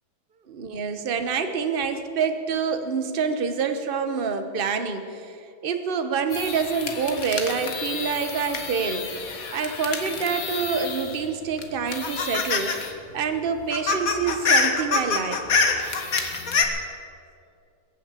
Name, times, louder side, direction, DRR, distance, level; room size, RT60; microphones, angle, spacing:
voice 1, 0.5-9.1 9.5-12.8 13.1-15.4, right 5 dB, 40° right, 7 dB, 0.8 m, -27 dB
sound 1, 6.3-11.2 11.6-12.9 13.2-13.3 13.6-16.6, left 4 dB, 45° left, 1.6 m, -27 dB
21.5 x 7.2 x 8.3 m, 2.5 s
omnidirectional pair, 2.3 m